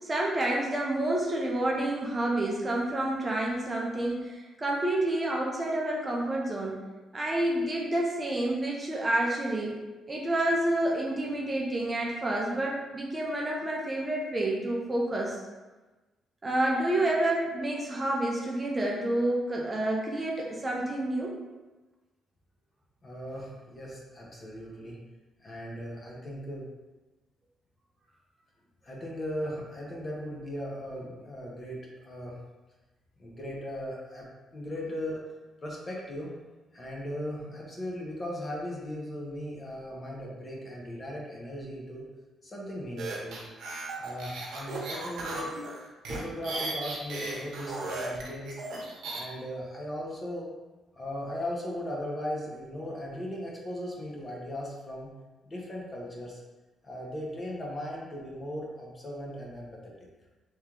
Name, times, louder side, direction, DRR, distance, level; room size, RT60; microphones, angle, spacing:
voice 1, 0.0-6.8 7.1-9.7 10.1-15.4 16.4-21.3, right 1 dB, 25° right, -2 dB, 0.6 m, -29 dB
voice 2, 23.0-25.0 25.4-26.7 28.8-32.4 33.2-34.3 34.5-35.2 35.6-36.3 36.7-42.1 42.4-43.4 44.0-45.5 46.1-48.6 49.1-50.5 51.0-55.1 55.4-56.4 56.8-59.9, equal, 30° left, -3 dB, 0.9 m, -37 dB
sound 1, 43.0-49.2, right 2 dB, 75° right, 0.8 m, -36 dB
3.2 x 3.0 x 3.7 m, 1.2 s
cardioid pair, 120°, 0 cm